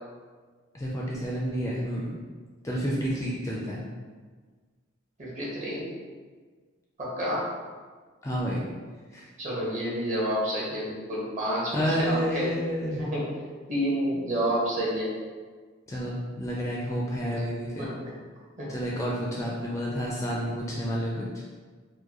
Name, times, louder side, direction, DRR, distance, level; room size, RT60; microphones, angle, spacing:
voice 1, 0.7-2.1 2.6-3.8 8.2-8.6 9.1-9.3 11.7-13.0 15.9-17.9 18.7-21.2, equal, 15° left, -4 dB, 0.3 m, -30 dB
voice 2, 5.2-5.8 7.0-7.4 9.4-12.5 13.0-13.3 13.7-15.1 17.3-17.4 17.8-18.1 18.6-18.7, equal, 35° right, -7 dB, 1.1 m, -29 dB
4.5 x 2.2 x 2.9 m, 1.5 s
head